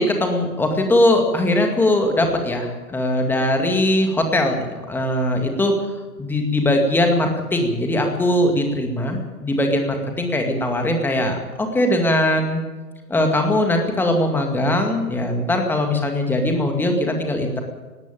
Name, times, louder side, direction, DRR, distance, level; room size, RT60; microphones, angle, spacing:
voice 1, 0.0-5.7 6.2-12.6 13.1-17.6, left 1 dB, 5° left, 4 dB, 2.1 m, -20 dB
19.0 x 16.5 x 9.0 m, 1.2 s
figure-of-eight pair, 130°, 48 cm